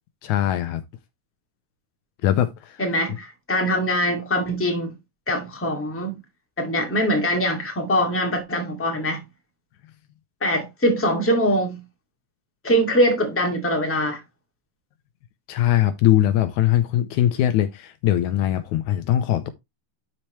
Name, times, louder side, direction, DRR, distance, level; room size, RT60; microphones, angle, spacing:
voice 1, 0.2-0.8 2.2-2.8 15.5-19.5, left 12 dB, 80° left, 2.0 m, -21 dB
voice 2, 2.8-4.9 5.3-6.2 6.6-9.2 10.4-11.8 12.6-14.2, equal, 5° left, 1.6 m, -23 dB
12.0 x 4.3 x 3.1 m
omnidirectional pair, 3.7 m